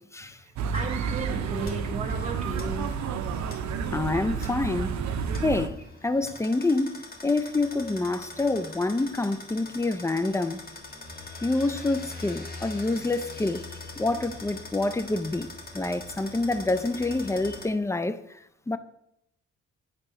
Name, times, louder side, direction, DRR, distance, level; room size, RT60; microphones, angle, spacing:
voice 1, 0.3-2.9 11.3-11.5, right 3 dB, 25° right, 1.9 m, -35 dB
sound 1, 0.6-5.7, right 6 dB, 65° right, 0.8 m, -30 dB
sound 2, 0.7-17.7, left 3 dB, 30° left, 1.4 m, -43 dB
voice 2, 3.9-4.9 5.4-10.6 11.4-13.7 14.0-15.5 15.7-18.2 18.7-18.8, left 2 dB, 10° left, 0.4 m, -27 dB
8.7 x 3.6 x 5.6 m
cardioid pair, 90°, 30 cm